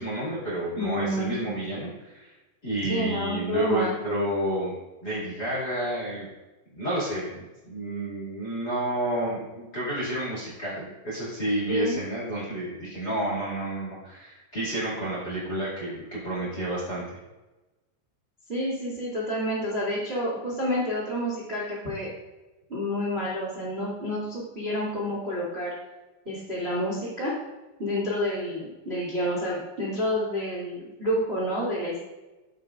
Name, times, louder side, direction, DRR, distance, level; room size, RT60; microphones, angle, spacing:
voice 1, 0.0-2.3 2.6-4.7 5.0-6.3 6.7-7.4 7.6-17.0, right 1 dB, 40° left, -7 dB, 1.4 m, -30 dB
voice 2, 0.8-1.4 2.9-3.9 11.7-12.0 18.5-22.1 22.7-25.7 26.2-27.3 27.8-32.1, equal, 75° right, -7 dB, 0.5 m, -29 dB
14.0 x 5.7 x 2.5 m, 1.1 s
omnidirectional pair, 5.9 m